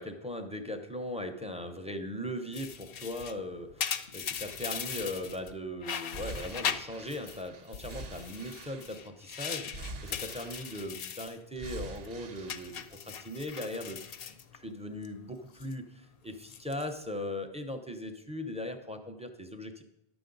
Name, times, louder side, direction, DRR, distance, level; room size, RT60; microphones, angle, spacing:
voice 1, 0.0-14.0 14.5-19.8, left 1 dB, 10° right, 6 dB, 0.5 m, -39 dB
sound 1, 2.5-5.5 5.8-7.4 7.7-11.4 11.7-12.1 12.5-15.1 15.4-15.7 16.3-17.0, left 8 dB, 70° left, 0.7 m, -39 dB
sound 2, 4.4-5.5 6.1-9.2 9.6-11.1 11.6-13.0 13.4-13.5, right 2 dB, 65° right, 1.1 m, -46 dB
11.5 x 6.9 x 3.9 m, 0.87 s
omnidirectional pair, 1.1 m